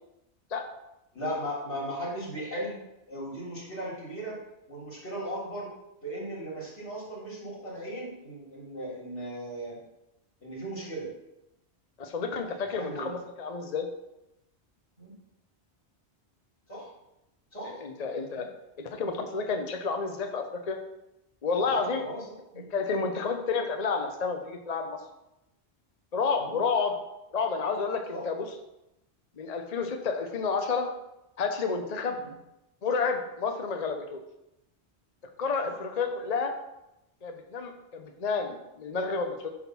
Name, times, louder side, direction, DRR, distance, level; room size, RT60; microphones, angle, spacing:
voice 1, 1.1-2.8 3.1-4.4 4.7-5.7 6.0-9.8 10.4-11.1 12.7-13.1 15.0-15.1 16.7-16.9 17.5-17.8 18.3-18.4 21.6-22.2 22.5-22.7 26.4-26.6 28.1-28.2 32.2-32.3 35.6-35.7, equal, 85° left, -5 dB, 3.6 m, -37 dB
voice 2, 12.0-13.9 17.6-18.4 18.8-20.8 21.4-22.0 22.7-25.0 26.1-27.0 27.3-28.5 29.4-30.9 31.4-32.2 32.8-34.2 35.4-36.5 37.2-39.5, left 4 dB, 40° left, 4 dB, 0.8 m, -30 dB
9.6 x 3.7 x 6.0 m, 0.89 s
omnidirectional pair, 1.1 m